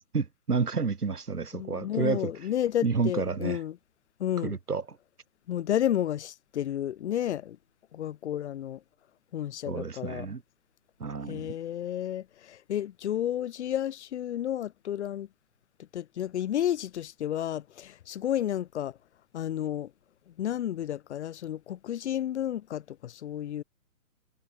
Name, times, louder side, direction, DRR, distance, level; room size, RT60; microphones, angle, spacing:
voice 1, 0.1-2.3 2.8-3.6 4.4-4.8 9.7-10.4 11.0-11.5, right 5 dB, 85° right, 3.7 m, -30 dB
voice 2, 1.5-3.8 4.2-4.6 5.5-7.6 7.9-8.8 9.3-10.3 11.3-15.3 15.8-19.0 19.3-19.9 20.3-23.6, left 11 dB, 50° left, 1.3 m, -31 dB
hypercardioid pair, 135°, 45 cm